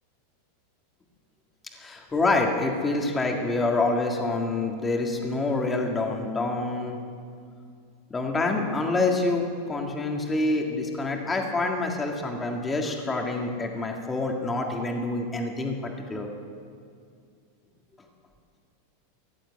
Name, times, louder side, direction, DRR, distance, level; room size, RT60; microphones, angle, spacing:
voice 1, 1.8-7.0 8.1-16.3, left 2 dB, 15° left, 2 dB, 1.9 m, -27 dB
15.0 x 10.5 x 8.6 m, 2.3 s
supercardioid pair, 145°, 0 cm